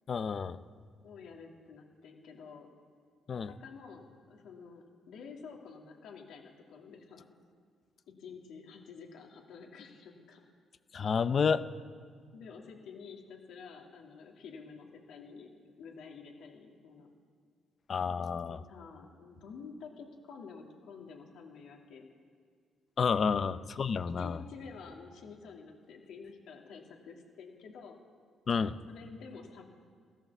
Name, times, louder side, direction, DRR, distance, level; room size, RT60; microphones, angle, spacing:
voice 1, 0.1-0.6 3.3-3.5 10.9-11.6 17.9-18.6 23.0-24.4 28.5-28.7, left 6 dB, 45° left, 13 dB, 0.6 m, -30 dB
voice 2, 1.0-2.7 3.3-7.3 8.1-10.5 12.3-15.5 15.8-17.1 18.5-22.1 23.1-23.5 24.0-28.0 28.9-29.6, left 5 dB, 80° left, 1 dB, 2.4 m, -49 dB
15.5 x 12.5 x 7.2 m, 2.1 s
cardioid pair, 90°, 0 cm